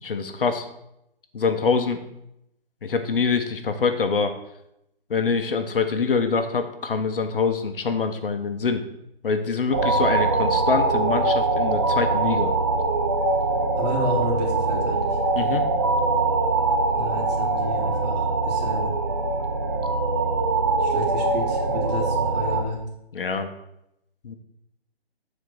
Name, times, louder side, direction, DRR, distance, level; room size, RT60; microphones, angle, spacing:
voice 1, 0.0-0.6 1.3-2.0 2.8-4.3 5.1-8.8 9.2-12.5 15.4-15.7 23.1-23.5 24.2-24.3, left 5 dB, 60° left, 7 dB, 1.1 m, -24 dB
sound 1, 9.7-22.6, right 3 dB, 20° right, 0.4 m, -23 dB
voice 2, 13.8-15.2 16.9-18.9 20.8-22.8, left 1 dB, 40° right, -1 dB, 2.7 m, -31 dB
7.6 x 4.5 x 6.9 m, 0.82 s
figure-of-eight pair, 150°, 31 cm